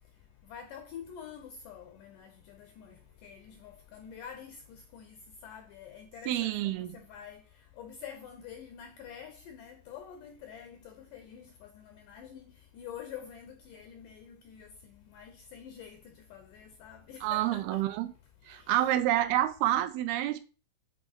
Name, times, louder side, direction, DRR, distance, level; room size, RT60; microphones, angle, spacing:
voice 1, 0.5-3.0 3.2-5.2 5.4-7.4 7.8-12.5 12.7-17.8 18.5-19.4, left 8 dB, 90° left, 1.9 m, -47 dB
voice 2, 6.3-6.9 17.2-18.1 18.5-20.4, right 13 dB, 80° right, 2.3 m, -28 dB
7.8 x 4.5 x 4.4 m
omnidirectional pair, 4.6 m